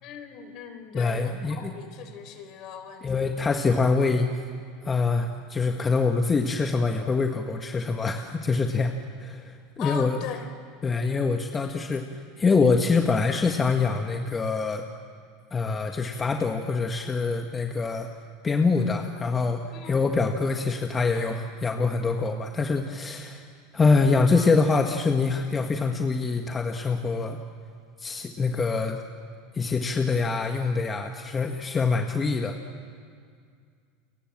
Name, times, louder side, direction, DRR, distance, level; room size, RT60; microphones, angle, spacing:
voice 1, 0.0-3.2 9.8-10.5 19.7-19.9, left 7 dB, 55° left, 8 dB, 4.1 m, -39 dB
voice 2, 0.9-1.7 3.0-4.3 4.8-10.2 10.8-14.8 15.5-18.1 18.4-27.4 28.0-29.0 29.5-32.6, left 4 dB, 25° left, 4 dB, 1.6 m, -25 dB
30.0 x 23.5 x 7.5 m, 2.2 s
hypercardioid pair, 100°, 0 cm